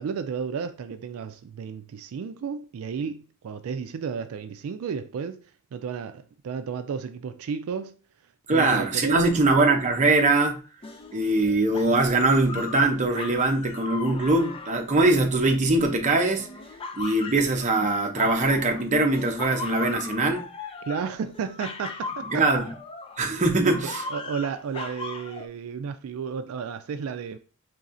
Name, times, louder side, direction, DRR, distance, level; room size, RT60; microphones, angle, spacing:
voice 1, 0.0-5.4 5.7-8.0 8.5-9.4 20.9-22.5 23.6-27.4, right 6 dB, 80° right, 0.3 m, -33 dB
voice 2, 8.5-10.6 11.1-16.5 17.0-20.4 22.3-22.7 23.2-24.0, right 2 dB, 35° right, 0.6 m, -22 dB
sound 1, 10.8-15.8 16.4-18.9 19.1-23.3 23.6-25.5, left 3 dB, 25° left, 0.4 m, -38 dB
4.1 x 3.1 x 2.5 m
head